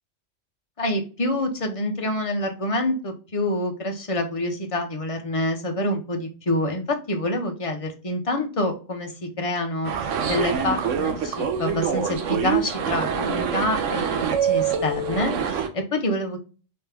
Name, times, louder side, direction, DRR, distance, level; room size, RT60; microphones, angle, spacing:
voice 1, 0.8-16.4, left 1 dB, 30° left, 4 dB, 0.8 m, -27 dB
sound 1, 9.8-15.7, right 7 dB, 80° right, 1.0 m, -25 dB
3.3 x 3.1 x 3.3 m, 0.36 s
omnidirectional pair, 1.3 m